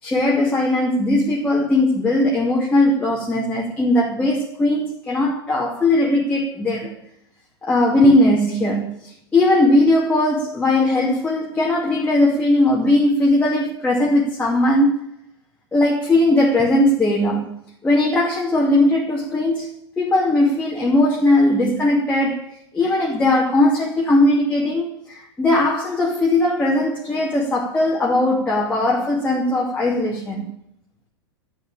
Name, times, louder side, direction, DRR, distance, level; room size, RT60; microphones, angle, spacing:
voice 1, 0.0-6.9 7.6-15.0 15.7-17.5 17.8-19.7 20.0-22.4 22.7-30.5, left 1 dB, 10° left, 2.5 m, -19 dB
12.5 x 8.1 x 8.9 m
figure-of-eight pair, 100°, 14 cm